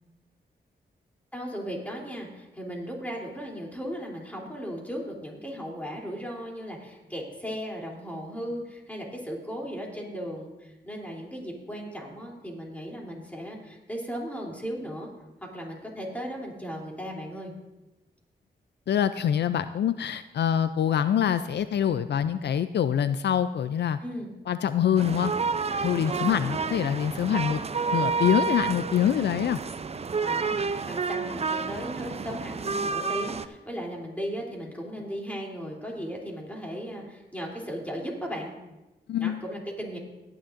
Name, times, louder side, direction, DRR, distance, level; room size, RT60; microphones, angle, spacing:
voice 1, 1.3-15.1 15.4-17.5 24.0-24.3 26.0-26.7 29.2-29.4 30.2-38.5 39.2-40.0, equal, 10° left, -1 dB, 3.1 m, -36 dB
voice 2, 18.9-24.0 24.5-25.3 25.8-27.6 27.9-29.6 39.1-39.4, left 9 dB, 70° left, 12 dB, 0.4 m, -25 dB
sound 1, 25.0-33.5, right 5 dB, 35° right, 0.5 m, -30 dB
17.5 x 10.0 x 2.6 m, 1.0 s
cardioid pair, 70°, 18 cm